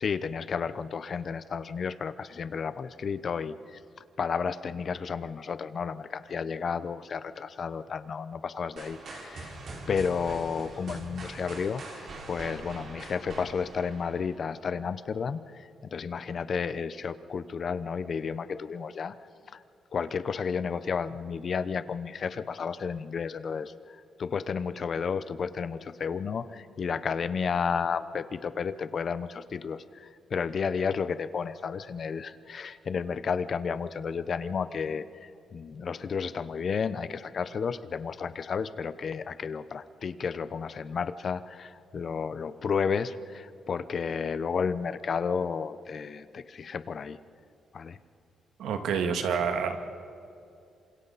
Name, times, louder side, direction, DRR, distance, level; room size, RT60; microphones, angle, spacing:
voice 1, 0.0-3.8 4.2-9.6 9.9-19.1 19.5-19.6 19.9-23.7 24.2-47.2 47.7-48.0, left 6 dB, 50° left, 13 dB, 0.9 m, -32 dB
sound 1, 8.8-14.7, right 2 dB, 60° right, 5.2 m, -43 dB
voice 2, 48.6-49.8, right 6 dB, 90° right, 5 dB, 2.0 m, -28 dB
27.5 x 26.0 x 4.2 m, 2.6 s
cardioid pair, 100°, 0 cm